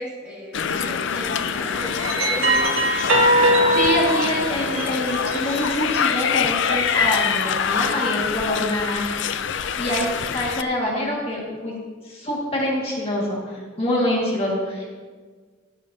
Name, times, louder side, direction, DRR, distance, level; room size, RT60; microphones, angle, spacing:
voice 1, 0.0-2.9 9.9-10.3, equal, 5° right, -5 dB, 2.2 m, -36 dB
sound 1, 0.5-10.6, left 7 dB, 65° left, 0.4 m, -25 dB
sound 2, 0.7-1.0 1.7-5.8 6.4-7.5, right 1 dB, 85° right, 1.9 m, -22 dB
voice 2, 3.7-9.1 9.5-11.8 12.0-14.9, left 1 dB, 30° left, -3 dB, 1.9 m, -25 dB
16.0 x 9.9 x 2.8 m, 1.5 s
head